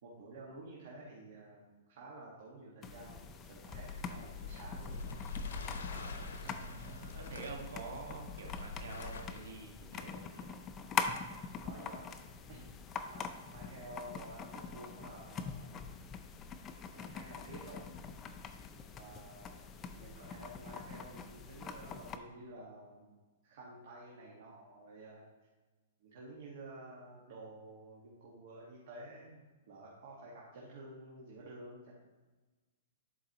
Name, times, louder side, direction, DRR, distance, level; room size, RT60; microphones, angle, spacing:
voice 1, 0.0-5.1 11.6-12.1 12.5-12.7 13.0-15.8 16.9-17.9 19.0-23.1 23.4-25.2 26.0-31.9, right 2 dB, 55° right, -4 dB, 1.6 m, -51 dB
sound 1, 2.8-22.2, left 5 dB, 20° left, 0.4 m, -44 dB
sound 2, 3.7-9.5, left 4 dB, 85° left, 0.7 m, -44 dB
voice 2, 5.9-10.5, right 4 dB, 80° right, 1 dB, 1.5 m, -48 dB
11.0 x 4.7 x 3.0 m, 1.3 s
hypercardioid pair, 155°, 0 cm